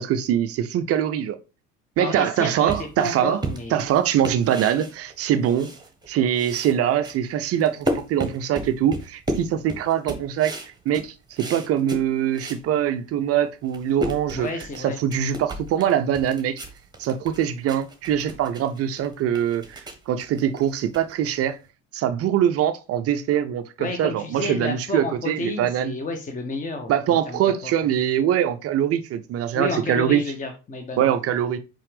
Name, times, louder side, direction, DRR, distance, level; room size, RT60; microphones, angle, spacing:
voice 1, 0.0-1.4 2.0-3.4 3.7-5.7 6.1-10.5 10.9-14.5 14.8-16.6 17.0-21.6 21.9-25.9 26.9-30.2 31.0-31.6, right 10 dB, 30° right, 0.5 m, -23 dB
voice 2, 2.0-3.8 14.3-15.0 23.8-27.7 29.5-31.1, left 2 dB, 15° left, 0.9 m, -31 dB
sound 1, 2.7-6.1 6.3-12.7 13.1-13.2 13.5-21.7, right 1 dB, 10° right, 1.4 m, -34 dB
5.6 x 5.2 x 3.4 m
figure-of-eight pair, 60°, 47 cm